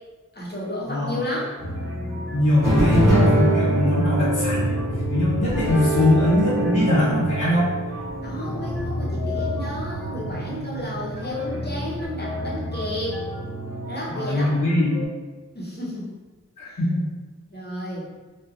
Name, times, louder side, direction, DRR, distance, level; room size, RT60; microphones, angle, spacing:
voice 1, 0.3-1.5 8.2-13.2 13.9-14.5 15.5-16.1 16.6-16.8 17.5-18.1, left 1 dB, 30° left, -6 dB, 0.8 m, -32 dB
sound 1, 1.6-15.1, left 1 dB, 5° left, 1.3 m, -32 dB
voice 2, 2.3-4.8 5.1-7.7 10.2-10.5 14.1-15.0 16.6-17.0, left 1 dB, 90° left, -11 dB, 0.9 m, -21 dB
sound 2, 2.6-8.8, right 1 dB, 75° right, 0.8 m, -23 dB
sound 3, 4.1-12.1, right 1 dB, 40° right, 0.5 m, -36 dB
2.7 x 2.3 x 2.4 m, 1.3 s
wide cardioid pair, 55°, 31 cm